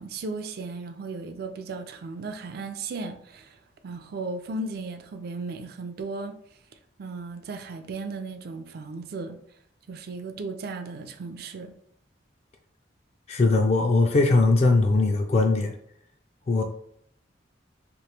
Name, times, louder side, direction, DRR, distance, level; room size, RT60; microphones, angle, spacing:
voice 1, 0.0-3.6 3.8-6.4 7.0-9.4 9.9-11.8, right 3 dB, 55° right, 0.4 m, -35 dB
voice 2, 13.3-15.7 16.5-16.6, left 3 dB, 35° left, 0.3 m, -20 dB
3.0 x 2.7 x 3.2 m
head